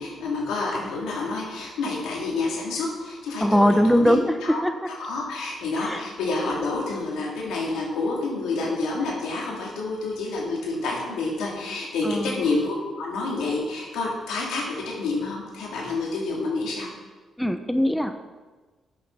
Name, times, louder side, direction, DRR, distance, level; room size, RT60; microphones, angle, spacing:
voice 1, 0.0-4.1 4.4-16.9, left 3 dB, 90° left, -3 dB, 3.0 m, -28 dB
voice 2, 3.4-4.3 4.6-4.7 5.8-6.0 12.0-12.4 17.4-18.1, equal, ahead, 8 dB, 0.7 m, -21 dB
11.5 x 8.6 x 4.2 m, 1.3 s
cardioid pair, 80°, 0 cm